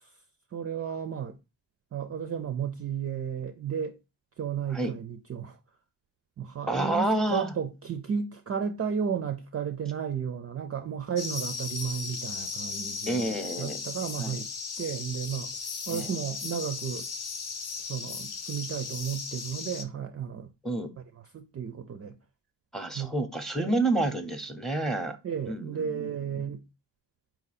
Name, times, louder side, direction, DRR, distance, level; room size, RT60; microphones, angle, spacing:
voice 1, 0.5-1.4 1.9-4.0 4.4-5.6 6.4-14.5 14.8-15.5 15.9-17.1 17.9-20.5 21.3-22.2 22.9-23.1 23.6-23.7 25.2-26.6, right 7 dB, 35° right, 0.4 m, -33 dB
voice 2, 6.7-7.5 13.1-13.8 14.2-14.4 15.9-16.1 20.6-20.9 22.7-25.2 25.4-26.1 26.4-26.5, right 2 dB, ahead, 0.7 m, -29 dB
sound 1, 11.2-19.8, left 5 dB, 60° left, 0.8 m, -36 dB
4.5 x 2.7 x 4.0 m
cardioid pair, 110°, 44 cm